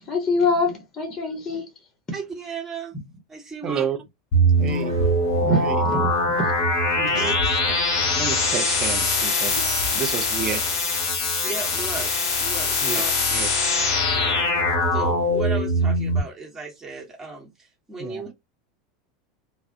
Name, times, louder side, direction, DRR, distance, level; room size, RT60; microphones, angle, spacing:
voice 1, 0.0-1.7 5.4-6.3, left 2 dB, 25° left, 0.9 m, -24 dB
voice 2, 2.1-3.0 3.3-3.8 7.1-7.3 11.4-13.1 14.9-18.3, right 3 dB, 15° right, 1.0 m, -35 dB
voice 3, 3.6-4.0 4.6-5.0 5.6-5.8 7.0-7.3 8.0-10.6 12.8-13.0 13.3-13.5 14.1-14.3 18.0-18.2, right 8 dB, 35° right, 0.5 m, -30 dB
sound 1, 4.3-16.2, left 1 dB, 55° left, 0.9 m, -22 dB
sound 2, 4.7-6.6 7.1-9.0 9.5-11.2, left 1 dB, 75° right, 0.7 m, -38 dB
2.3 x 2.0 x 2.6 m
figure-of-eight pair, 80°, 2 cm